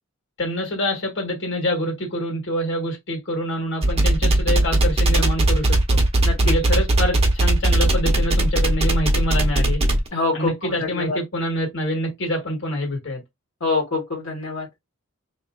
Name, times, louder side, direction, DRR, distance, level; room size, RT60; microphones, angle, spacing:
voice 1, 0.4-6.0 6.4-9.8 10.3-13.2, equal, 60° left, 1.6 m, -26 dB
sound 1, 3.8-10.1, right 1 dB, 30° right, 0.9 m, -18 dB
voice 2, 6.2-6.5 10.1-11.2 13.6-14.7, left 3 dB, 80° left, 1.5 m, -25 dB
3.9 x 2.9 x 2.4 m
head